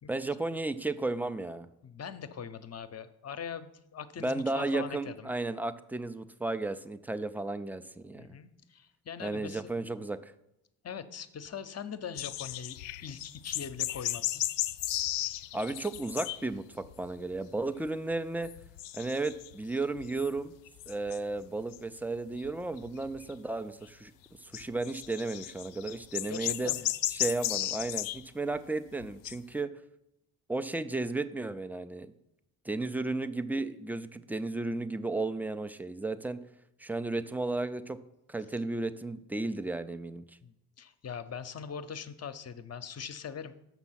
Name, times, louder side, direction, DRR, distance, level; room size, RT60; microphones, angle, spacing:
voice 1, 0.1-1.7 4.2-8.4 9.2-10.3 15.5-18.5 18.9-20.5 20.9-24.1 24.4-26.7 27.1-29.7 30.5-32.1 32.6-36.4 36.8-38.0 38.3-40.2, right 2 dB, 5° right, 12 dB, 0.3 m, -34 dB
voice 2, 1.8-5.4 8.2-9.7 10.8-14.4 26.3-26.9 40.4-43.6, left 7 dB, 35° left, 12 dB, 0.7 m, -42 dB
sound 1, 12.2-16.5 16.8-17.4 17.8-18.1 18.4-21.4 21.7-21.8 22.4-23.3 24.5-28.2 28.6-28.7 29.0-29.4, left 15 dB, 65° left, 0.5 m, -35 dB
7.2 x 6.0 x 5.8 m, 0.85 s
hypercardioid pair, 45°, 48 cm